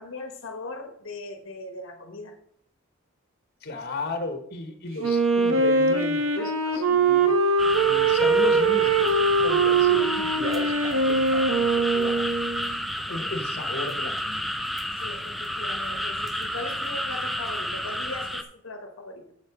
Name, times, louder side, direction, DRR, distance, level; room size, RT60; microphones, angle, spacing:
voice 1, 0.0-2.4 15.0-19.2, left 2 dB, 70° left, 5 dB, 1.2 m, -39 dB
voice 2, 3.6-7.3 7.8-12.2 13.1-14.5, left 2 dB, 50° left, 7 dB, 1.4 m, -35 dB
Wind instrument woodwind instrument, 5.0-12.7, right 3 dB, 90° right, 1.5 m, -22 dB
sound 1, 7.6-18.4, equal, ahead, 0.6 m, -31 dB
7.7 x 7.6 x 4.9 m, 0.69 s
head